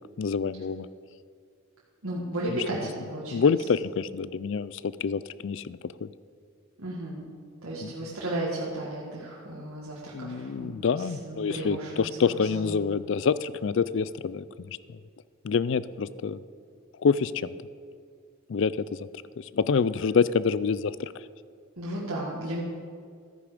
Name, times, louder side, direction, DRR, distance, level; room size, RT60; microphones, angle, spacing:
voice 1, 0.2-0.9 3.3-6.1 7.8-7.9 10.1-14.8 15.4-16.4 17.0-17.6 18.5-19.1 19.4-21.1, left 5 dB, 55° left, 17 dB, 0.4 m, -27 dB
voice 2, 2.0-3.5 6.8-7.2 7.6-12.8 21.8-22.6, right 1 dB, 80° right, -6 dB, 1.9 m, -34 dB
13.5 x 9.7 x 5.1 m, 2.2 s
head